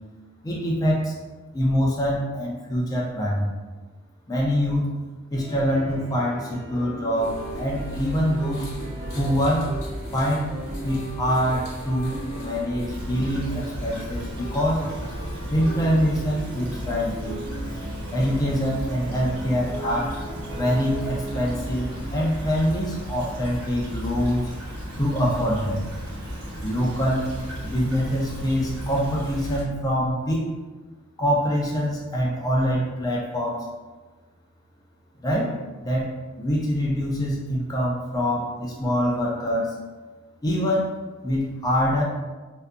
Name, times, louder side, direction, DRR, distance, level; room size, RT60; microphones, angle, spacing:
voice 1, 0.4-1.1 1.5-3.5 4.3-5.0 5.3-8.8 9.2-9.7 10.1-10.5 10.8-14.9 15.5-17.4 17.7-17.8 18.1-20.1 20.5-24.5 25.0-25.8 26.6-27.3 27.6-30.5 31.2-33.6 35.2-35.5 35.8-36.1 36.4-39.8 40.4-40.9 41.2-42.0, equal, 15° left, -4 dB, 0.4 m, -24 dB
sound 1, 5.3-22.3, right 2 dB, 60° right, 0.5 m, -38 dB
sound 2, 7.2-13.1, equal, 70° left, 0.7 m, -36 dB
Stream / Trickle dribble, 12.9-29.6, equal, 85° right, 0.8 m, -34 dB
2.6 x 2.4 x 2.2 m, 1.3 s
head